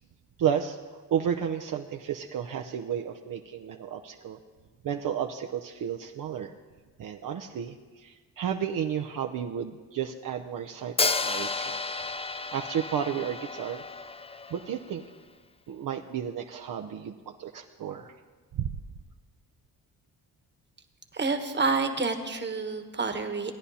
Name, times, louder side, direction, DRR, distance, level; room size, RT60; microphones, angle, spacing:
voice 1, 0.4-4.4 4.8-6.5 7.0-11.8 12.5-13.8 14.5-15.0 15.7-18.1 18.5-18.7, right 8 dB, 55° right, 3 dB, 0.7 m, -32 dB
Hi-hat, 11.0-14.9, left 3 dB, 15° left, 0.4 m, -32 dB
voice 2, 21.1-23.5, right 4 dB, 25° right, 6 dB, 1.3 m, -28 dB
18.0 x 9.9 x 2.8 m, 1.4 s
supercardioid pair, 60°, 39 cm